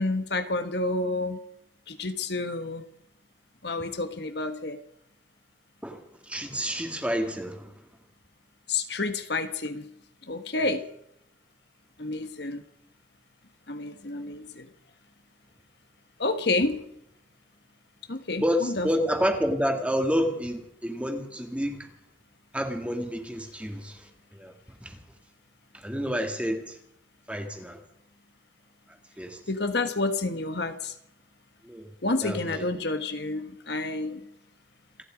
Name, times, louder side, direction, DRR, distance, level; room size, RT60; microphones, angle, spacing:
voice 1, 0.0-1.4 1.9-2.8 3.6-4.8 8.7-9.9 10.3-10.8 12.0-12.6 13.7-14.7 16.2-16.8 18.1-18.9 29.5-30.9 32.0-34.2, left 2 dB, 55° left, 1.4 m, -29 dB
voice 2, 5.8-7.7 18.4-21.9 22.5-24.5 24.8-25.0 25.7-26.8 27.3-27.8 29.2-29.4 31.6-31.9 32.2-32.7, equal, 5° right, 2.0 m, -29 dB
28.0 x 10.5 x 5.1 m
head